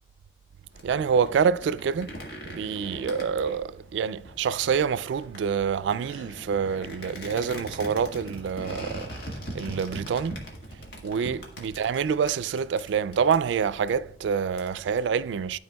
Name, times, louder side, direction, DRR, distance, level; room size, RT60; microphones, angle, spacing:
sound 1, 0.7-15.0, equal, 70° left, 1.7 m, -41 dB
voice 1, 0.8-2.1 2.5-9.1 9.5-10.4 11.0-15.6, right 6 dB, 90° right, 0.3 m, -26 dB
12.0 x 4.6 x 2.3 m
head